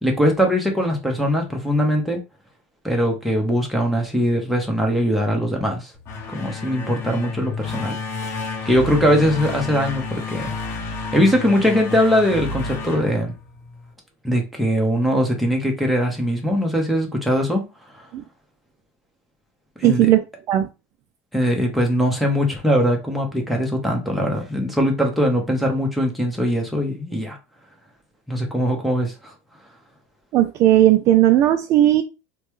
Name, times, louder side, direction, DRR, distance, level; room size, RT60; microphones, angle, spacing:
voice 1, 0.0-2.2 2.8-5.9 6.3-8.0 8.6-10.5 11.1-13.3 14.2-17.7 17.9-18.0 19.8-20.1 21.3-27.4 28.3-29.3, equal, ahead, 0.9 m, -21 dB
sound 1, 5.9-13.9, left 4 dB, 40° left, 0.8 m, -30 dB
voice 2, 19.8-20.2 20.5-20.7 30.3-32.0, right 13 dB, 45° right, 0.4 m, -16 dB
3.0 x 2.2 x 3.1 m
supercardioid pair, 120°, 7 cm